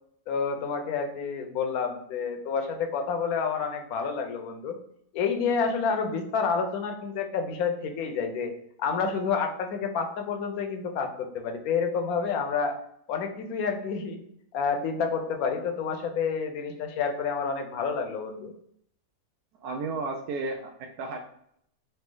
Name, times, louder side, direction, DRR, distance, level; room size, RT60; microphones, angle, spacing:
voice 1, 0.3-4.8 5.1-8.5 8.8-12.7 13.1-14.2 14.5-18.5, left 5 dB, 70° left, 5 dB, 1.1 m, -29 dB
voice 2, 19.6-21.2, right 3 dB, 80° right, 3 dB, 1.1 m, -33 dB
4.0 x 2.8 x 3.7 m, 0.70 s
omnidirectional pair, 1.7 m